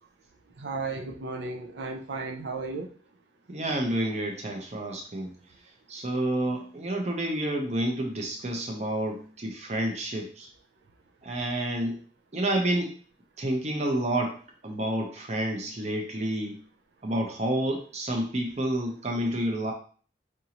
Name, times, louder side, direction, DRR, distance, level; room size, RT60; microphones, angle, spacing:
voice 1, 0.6-2.9, right 3 dB, 85° right, 3 dB, 0.5 m, -34 dB
voice 2, 3.5-5.3 5.9-10.5 11.2-12.0 12.3-12.9 13.4-14.4 14.6-16.6 17.0-19.7, right 1 dB, 40° right, 2 dB, 0.7 m, -29 dB
4.8 x 2.6 x 2.9 m, 0.42 s
head